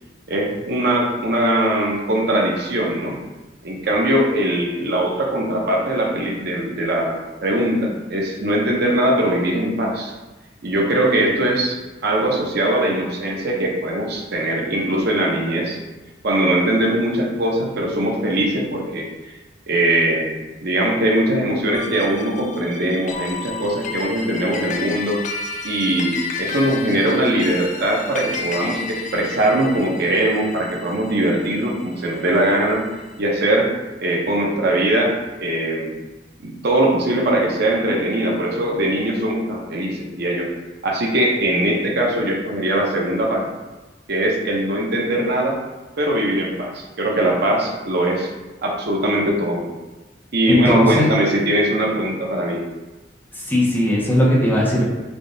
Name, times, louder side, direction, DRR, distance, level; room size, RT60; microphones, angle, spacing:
voice 1, 0.3-3.2 3.6-10.1 10.6-15.8 16.2-19.1 19.7-25.2 25.6-32.8 33.2-33.7 34.0-36.0 36.4-40.5 40.8-43.5 44.1-45.6 46.0-48.3 48.6-49.7 50.3-52.6, right 1 dB, 60° right, -1 dB, 0.8 m, -21 dB
sound 1, 21.7-32.3, left 4 dB, 40° left, 0.4 m, -32 dB
voice 2, 50.5-51.1 53.3-54.8, left 1 dB, 10° left, -5 dB, 0.8 m, -17 dB
3.5 x 2.4 x 3.9 m, 1.1 s
head